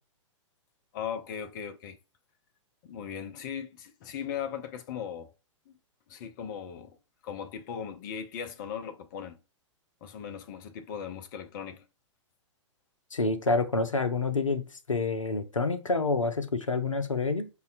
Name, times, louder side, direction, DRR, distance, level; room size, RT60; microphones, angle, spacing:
voice 1, 0.9-2.0 2.8-5.3 5.7-5.8 6.1-7.0 7.2-9.4 10.0-11.9, left 8 dB, 40° left, 0.5 m, -38 dB
voice 2, 13.1-17.5, left 3 dB, 85° left, 0.5 m, -28 dB
5.2 x 2.2 x 2.5 m
figure-of-eight pair, 110°, 16 cm